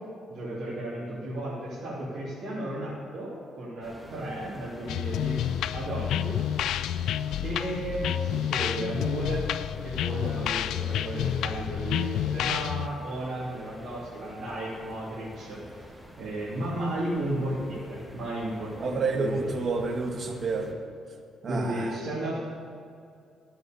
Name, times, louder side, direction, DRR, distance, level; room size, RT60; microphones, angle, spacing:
voice 1, 0.3-6.4 7.4-9.4 9.8-15.9 16.2-19.6 21.5-22.4, right 1 dB, 70° right, -9 dB, 3.3 m, -34 dB
sound 1, 3.8-20.7, equal, 5° right, 2.5 m, -48 dB
sound 2, 4.9-12.9, left 11 dB, 85° left, 0.4 m, -29 dB
voice 2, 18.8-20.8 21.4-21.9, right 3 dB, 50° right, 4 dB, 1.5 m, -29 dB
12.5 x 8.1 x 6.9 m, 2.4 s
cardioid pair, 90°, 0 cm